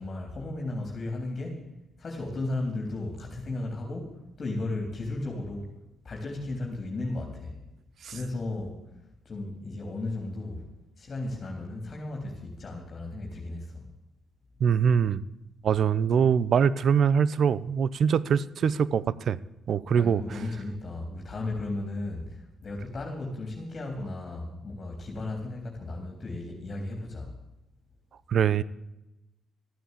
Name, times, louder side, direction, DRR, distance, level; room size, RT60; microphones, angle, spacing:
voice 1, 0.0-1.7 2.0-5.7 6.0-7.6 8.1-8.8 9.3-10.7 11.0-13.9 19.9-27.3, left 2 dB, 40° left, 1 dB, 3.7 m, -35 dB
voice 2, 14.6-15.2 15.6-19.4 19.7-20.2 28.3-28.6, right 7 dB, 60° right, 19 dB, 0.7 m, -23 dB
14.0 x 9.4 x 8.4 m, 0.93 s
cardioid pair, 90°, 0 cm